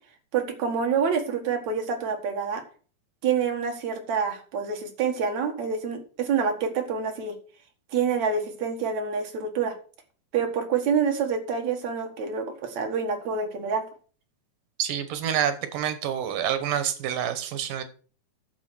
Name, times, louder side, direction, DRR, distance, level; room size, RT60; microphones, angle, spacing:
voice 1, 0.3-2.6 3.2-7.3 7.9-9.8 10.3-13.8, right 6 dB, 65° right, 4 dB, 2.9 m, -27 dB
voice 2, 14.8-17.8, right 9 dB, 90° right, 10 dB, 2.8 m, -27 dB
9.5 x 7.2 x 6.1 m, 0.40 s
omnidirectional pair, 3.6 m